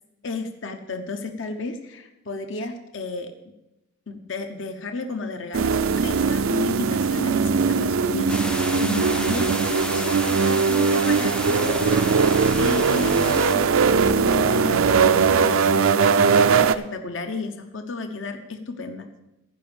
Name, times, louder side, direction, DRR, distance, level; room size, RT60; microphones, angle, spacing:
voice 1, 0.2-3.3 4.1-19.1, left 3 dB, 65° left, 6 dB, 0.9 m, -33 dB
sound 1, 5.5-16.8, right 5 dB, 85° right, 0.5 m, -20 dB
sound 2, 8.3-13.6, left 1 dB, 5° left, 0.4 m, -32 dB
15.0 x 5.3 x 7.0 m, 0.93 s
head